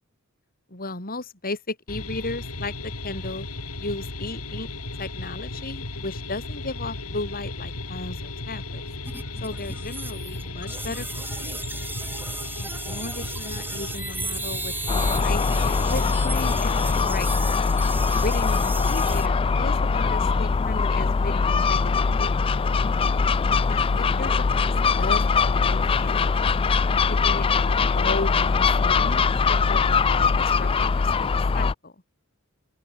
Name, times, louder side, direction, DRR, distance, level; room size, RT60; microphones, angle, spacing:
voice 1, 0.7-3.5 3.8-4.7 5.0-8.8 9.4-11.6 12.6-17.5 18.2-22.7 23.7-26.5 27.1-31.9, left 2 dB, 40° left, 4.6 m, -35 dB
sound 1, 1.9-17.0, left 2 dB, 80° left, 6.8 m, -35 dB
sound 2, 9.1-19.3, right 3 dB, 10° right, 3.8 m, -35 dB
Gull seagull, 14.9-31.7, left 5 dB, 25° left, 0.3 m, -22 dB
open air
head